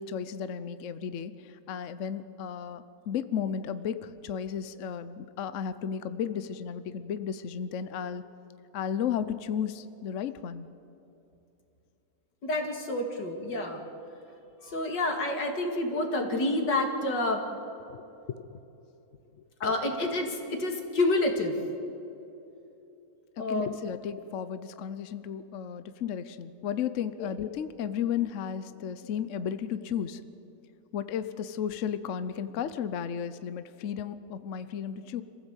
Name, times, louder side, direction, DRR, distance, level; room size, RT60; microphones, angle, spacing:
voice 1, 0.0-8.2 8.7-10.7 17.9-18.0 18.3-18.6 23.4-30.2 30.9-35.2, left 8 dB, 55° left, 12 dB, 1.0 m, -34 dB
voice 2, 12.4-13.8 14.6-17.4 19.6-21.6 23.4-23.7 27.2-27.3, left 2 dB, 90° left, 3 dB, 3.0 m, -28 dB
26.5 x 15.5 x 8.2 m, 2.9 s
omnidirectional pair, 1.8 m